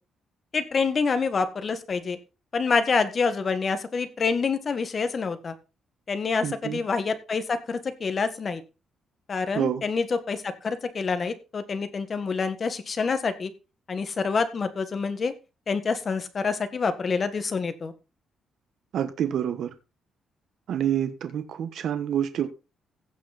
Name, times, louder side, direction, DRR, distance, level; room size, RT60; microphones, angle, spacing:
voice 1, 0.5-2.2 2.5-5.5 6.1-8.6 9.3-13.5 13.9-15.3 15.7-17.9, left 5 dB, 35° left, 1.7 m, -27 dB
voice 2, 6.4-6.8 9.5-9.8 18.9-19.7 20.7-22.5, right 10 dB, 65° right, 1.3 m, -27 dB
16.0 x 6.3 x 4.1 m
cardioid pair, 130°, 0 cm